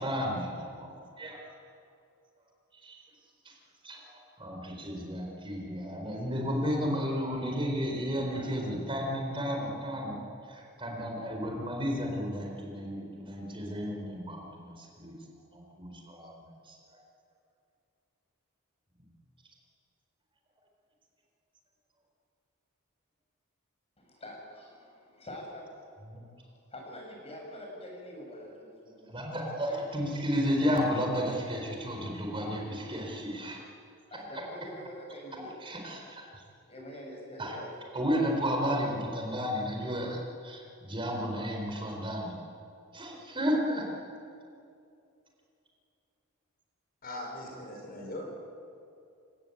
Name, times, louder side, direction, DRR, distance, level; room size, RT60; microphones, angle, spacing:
voice 1, 0.0-1.5 2.8-3.0 3.4-3.5 3.8-15.2 15.5-16.8 26.1-26.2 29.1-33.6 35.6-36.4 37.4-37.6 37.9-42.3 42.9-43.9, equal, 25° right, 0 dB, 4.2 m, -33 dB
voice 2, 24.0-25.7 26.4-30.1 34.1-35.7 36.7-37.7, equal, 30° left, 0 dB, 7.1 m, -46 dB
voice 3, 47.0-48.3, left 1 dB, 45° left, 1 dB, 5.3 m, -40 dB
28.0 x 17.5 x 9.3 m, 2.5 s
head